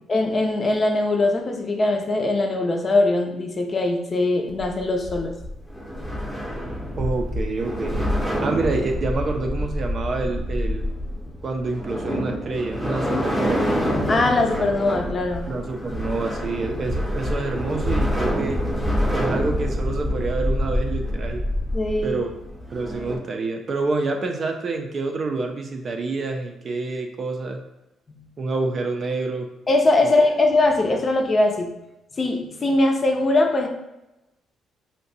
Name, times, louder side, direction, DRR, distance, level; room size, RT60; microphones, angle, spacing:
voice 1, 0.1-5.4 14.1-15.5 21.7-22.2 28.1-28.2 29.7-31.7 32.2-33.7, left 2 dB, 35° left, 3 dB, 0.5 m, -21 dB
sound 1, 4.5-23.2, equal, 5° right, 0.8 m, -26 dB
voice 2, 7.0-8.1 8.4-10.9 11.4-13.6 15.5-18.6 19.0-21.4 22.0-22.3 22.7-27.6 28.4-29.5 30.0-30.1, right 3 dB, 45° right, 4 dB, 0.4 m, -27 dB
2.6 x 2.2 x 4.0 m, 0.93 s
cardioid pair, 90°, 0 cm